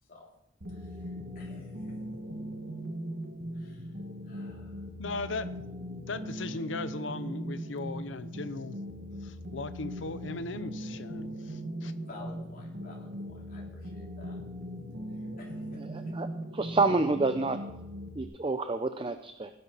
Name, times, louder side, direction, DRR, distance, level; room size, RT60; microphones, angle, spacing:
sound 1, 0.6-18.2, equal, 55° right, 1.3 m, -39 dB
voice 1, 0.7-2.0 3.5-4.0 4.2-4.8 12.0-14.4 15.1-16.1, left 2 dB, 50° left, -3 dB, 3.5 m, -52 dB
voice 2, 5.0-5.6 6.1-8.7 9.2-11.9, left 3 dB, 75° left, 12 dB, 0.8 m, -38 dB
voice 3, 16.6-17.6 18.2-19.5, right 3 dB, 25° right, 8 dB, 0.6 m, -28 dB
18.0 x 10.5 x 4.1 m, 0.82 s
head